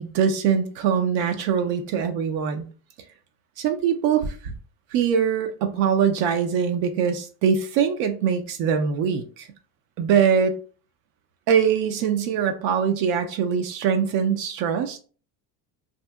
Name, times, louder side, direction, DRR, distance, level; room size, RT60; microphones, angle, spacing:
voice 1, 0.0-2.7 3.6-4.5 4.9-9.5 10.0-10.5 11.5-15.0, right 7 dB, 70° right, 0.5 m, -23 dB
2.7 x 2.6 x 2.2 m
cardioid pair, 125°, 45 cm